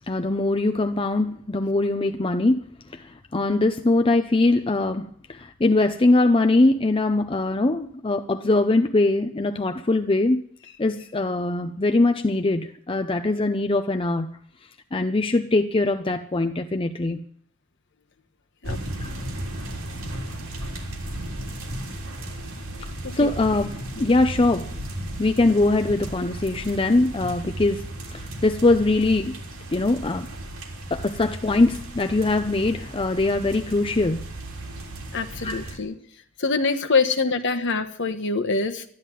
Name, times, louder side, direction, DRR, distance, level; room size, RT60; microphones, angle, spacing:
voice 1, 0.1-10.4 10.8-14.3 14.9-17.2 19.0-19.1 22.8-24.7 25.2-29.3 29.7-30.3 30.9-34.2 35.4-35.7, left 2 dB, 25° left, 0.6 m, -22 dB
sound 1, 18.6-35.8, right 1 dB, 65° right, 3.5 m, -35 dB
voice 2, 35.1-35.9 36.4-38.8, left 4 dB, 55° left, 1.2 m, -24 dB
12.5 x 11.0 x 9.1 m
head